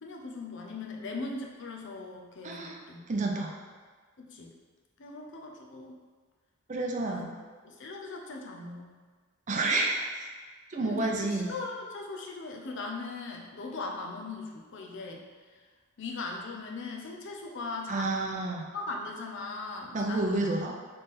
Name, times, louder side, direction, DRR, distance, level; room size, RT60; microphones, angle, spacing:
voice 1, 0.0-3.0 4.2-4.5 5.0-6.0 6.9-7.3 7.6-8.9 10.8-15.2 15.5-15.6 16.0-18.1 18.7-20.5, left 3 dB, 60° left, 0 dB, 0.6 m, -39 dB
voice 2, 2.4-2.8 3.1-3.5 6.7-7.3 9.5-10.0 10.7-11.5 17.9-18.6 19.9-20.7, right 2 dB, 35° right, 0 dB, 0.5 m, -29 dB
3.7 x 3.3 x 4.1 m, 1.5 s
head